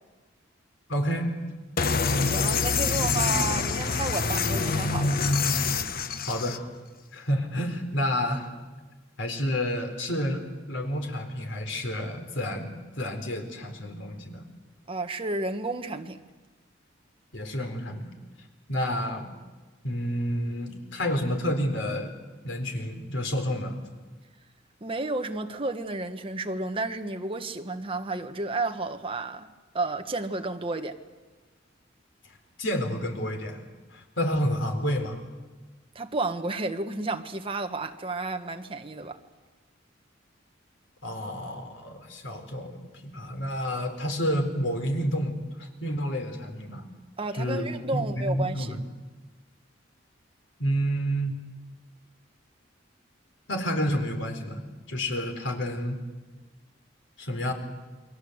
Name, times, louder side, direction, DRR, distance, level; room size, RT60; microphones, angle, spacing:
voice 1, 0.9-1.3 6.2-6.6 7.1-8.5 9.2-10.4 10.7-14.4 17.3-18.1 18.7-19.3 19.8-22.1 22.4-23.8 32.6-33.6 33.9-35.2 41.0-46.8 47.4-48.8 50.6-51.4 53.5-54.6 54.9-56.0 57.2-57.5, equal, 70° left, 4.1 m, -29 dB
sound 1, 1.8-6.6, left 4 dB, 50° left, 1.1 m, -25 dB
voice 2, 2.2-5.2 14.9-16.2 24.8-29.5 29.7-31.0 35.9-39.2 47.2-48.8, right 2 dB, 30° right, 1.4 m, -32 dB
29.5 x 22.0 x 8.1 m
head